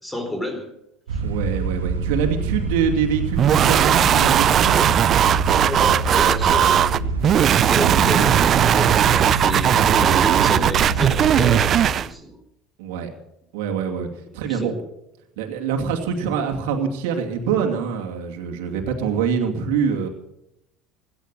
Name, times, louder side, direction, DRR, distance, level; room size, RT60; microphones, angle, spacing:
voice 1, 0.0-0.7 1.1-1.2 5.6-7.1 7.7-12.4 14.3-14.7, equal, 10° left, 5 dB, 4.3 m, -30 dB
sound 1, 1.1-11.9, right 4 dB, 85° right, 1.8 m, -26 dB
voice 2, 1.2-5.0 12.8-13.1 13.5-14.1 14.3-14.7 15.4-20.1, right 7 dB, 70° right, 2 dB, 2.6 m, -24 dB
sound 2, 3.4-12.1, right 10 dB, 45° right, 0.6 m, -18 dB
17.0 x 12.5 x 6.8 m, 0.84 s
hypercardioid pair, 75°, 0 cm